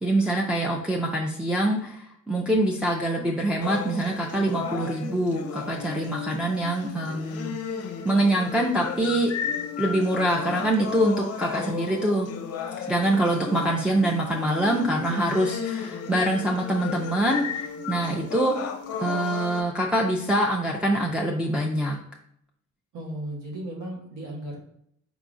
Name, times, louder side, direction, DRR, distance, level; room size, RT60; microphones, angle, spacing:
voice 1, 0.0-7.5 8.0-9.3 9.8-12.3 12.8-18.6 19.0-22.0, right 1 dB, 5° right, -2 dB, 0.5 m, -24 dB
sound 1, 3.6-19.6, left 7 dB, 55° left, 0.6 m, -34 dB
voice 2, 22.9-24.6, right 1 dB, 85° right, -1 dB, 1.4 m, -35 dB
4.9 x 3.4 x 2.5 m, 0.70 s
cardioid pair, 90°, 30 cm